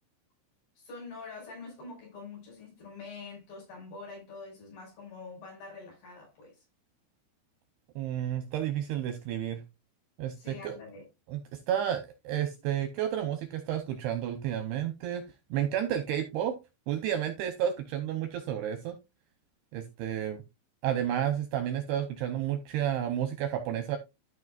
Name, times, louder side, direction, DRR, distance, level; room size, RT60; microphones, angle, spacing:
voice 1, 0.8-6.6 10.4-11.0, left 4 dB, 50° left, 7.2 m, -45 dB
voice 2, 8.0-9.6 10.2-10.8 11.3-15.2 15.5-16.6 16.9-19.0 19.7-20.4 20.8-24.0, right 10 dB, 75° right, 2.5 m, -31 dB
13.5 x 6.2 x 2.4 m
omnidirectional pair, 5.4 m